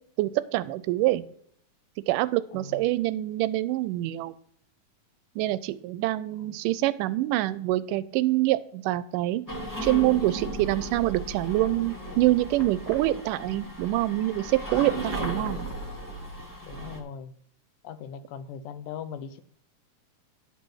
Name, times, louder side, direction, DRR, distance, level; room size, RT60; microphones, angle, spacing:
voice 1, 0.2-1.2 2.1-4.3 5.4-9.4 9.8-15.7, right 16 dB, 90° right, 16 dB, 2.1 m, -25 dB
voice 2, 2.5-2.8 6.4-6.6 15.2-15.6 16.6-17.4 17.8-19.4, left 7 dB, 85° left, 12 dB, 2.2 m, -40 dB
sound 1, 9.5-17.0, right 1 dB, 10° left, 0.9 m, -36 dB
10.5 x 4.1 x 6.3 m, 0.64 s
omnidirectional pair, 3.7 m